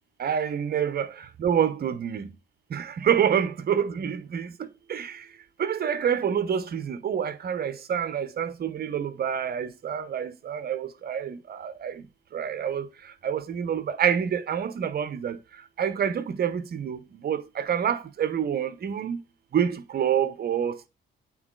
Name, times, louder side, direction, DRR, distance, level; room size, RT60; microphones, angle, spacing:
voice 1, 0.2-2.3 2.7-5.3 5.6-12.1 12.3-19.2 19.5-20.9, right 8 dB, 50° right, 0.9 m, -27 dB
8.6 x 4.0 x 3.8 m
cardioid pair, 90°, 20 cm